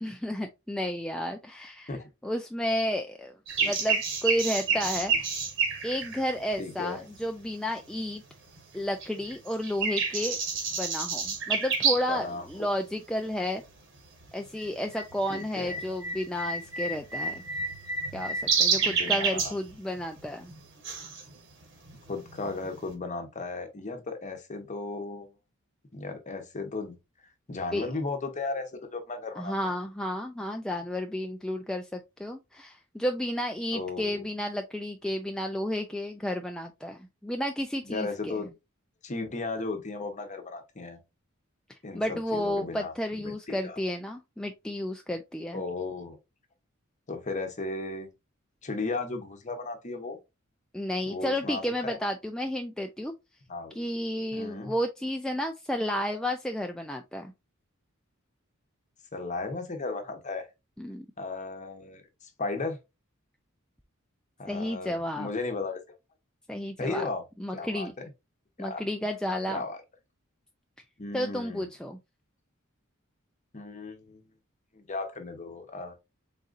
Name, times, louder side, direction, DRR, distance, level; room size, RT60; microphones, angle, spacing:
voice 1, 0.0-1.9 2.2-3.3 3.6-5.3 5.8-8.2 8.7-10.4 10.7-13.6 14.3-17.4 18.1-20.5 27.7-27.9 29.4-38.4 41.7-45.6 50.7-53.1 53.7-57.3 60.8-61.1 64.5-65.3 66.5-67.0 67.4-67.9 68.6-69.6 71.1-72.0, equal, 5° left, 0.3 m, -32 dB
sound 1, 3.5-7.4 7.9-8.8 9.0-12.2 12.5-12.6 13.3-13.6 13.9-22.9, right 5 dB, 60° right, 1.2 m, -30 dB
voice 2, 6.6-7.1 12.1-12.7 15.3-15.8 18.8-19.5 22.1-25.3 25.9-27.0 27.5-29.7 33.7-34.2 37.8-38.5 39.0-41.0 41.8-43.8 45.5-46.2 47.1-48.1 48.6-50.2 51.1-52.0 53.5-53.8 54.3-54.7 59.1-60.5 61.2-62.8 64.4-65.8 66.8-67.2 67.5-68.1 68.6-68.8 69.5-69.8 71.0-71.7 73.5-74.2 74.7-75.9, left 3 dB, 35° left, 0.8 m, -35 dB
4.1 x 3.8 x 2.4 m
head